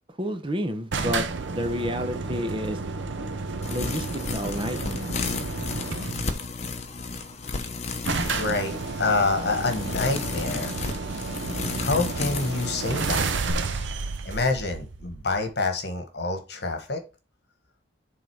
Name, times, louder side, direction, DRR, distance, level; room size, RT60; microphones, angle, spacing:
voice 1, 0.2-1.3 1.5-2.8 3.7-4.1 4.3-5.1, equal, 30° right, 7 dB, 0.9 m, -29 dB
sound 1, 0.9-6.4 7.4-7.5 7.7-7.8 8.0-15.5, right 4 dB, 75° right, 0.7 m, -31 dB
sound 2, 3.6-13.5, left 4 dB, 35° left, 0.9 m, -33 dB
voice 2, 8.3-10.7 11.8-13.3 14.2-17.0, left 3 dB, 60° left, 6 dB, 1.4 m, -27 dB
7.5 x 4.0 x 4.7 m, 0.31 s
head